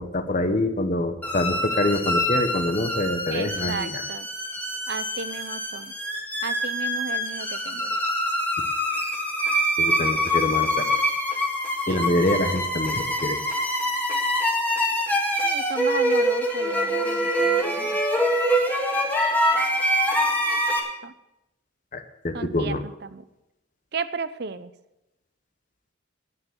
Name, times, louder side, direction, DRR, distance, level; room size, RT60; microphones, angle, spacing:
voice 1, 0.0-4.0 8.6-8.7 9.8-10.9 11.9-13.4 21.9-22.8, left 1 dB, 40° left, 8 dB, 0.9 m, -25 dB
sound 1, 1.2-20.8, equal, 10° left, 1.9 m, -25 dB
voice 2, 3.3-4.3 4.9-5.9 6.4-8.0 11.9-12.0 15.4-18.0 21.0-21.1 22.3-23.2 23.9-24.7, right 4 dB, 55° right, 14 dB, 0.7 m, -34 dB
9.8 x 9.4 x 8.1 m, 0.91 s
head